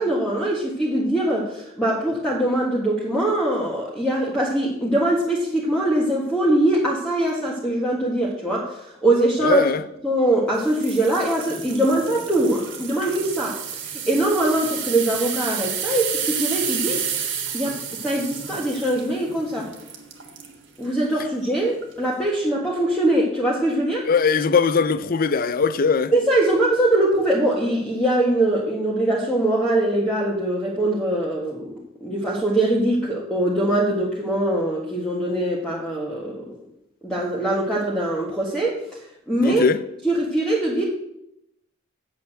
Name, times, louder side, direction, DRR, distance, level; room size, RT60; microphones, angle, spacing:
voice 1, 0.0-9.6 10.0-17.0 17.5-19.7 20.8-24.1 26.1-31.7 32.0-36.5 37.0-39.0 39.3-39.7 40.0-40.8, right 1 dB, 5° left, 1.6 m, -22 dB
voice 2, 9.4-9.8 24.0-26.1 39.4-39.8, left 5 dB, 45° left, 0.5 m, -20 dB
sound 1, 10.6-20.5 21.0-21.3 21.8-21.9, right 7 dB, 65° right, 1.7 m, -31 dB
8.6 x 6.9 x 7.7 m
head